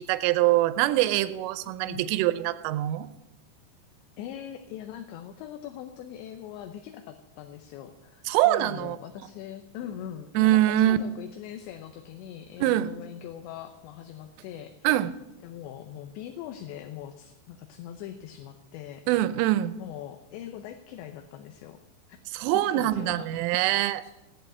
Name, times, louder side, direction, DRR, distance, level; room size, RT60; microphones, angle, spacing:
voice 1, 0.0-3.1 8.3-9.0 10.4-11.0 12.6-12.9 14.8-15.1 19.1-19.7 22.3-24.1, right 14 dB, 90° right, 14 dB, 3.2 m, -24 dB
voice 2, 1.8-2.1 4.2-15.1 15.4-19.1 19.8-21.8 22.1-22.2 22.7-23.4 24.0-24.1, left 10 dB, 80° left, 7 dB, 2.8 m, -41 dB
17.5 x 8.0 x 7.8 m, 1.0 s
omnidirectional pair, 5.6 m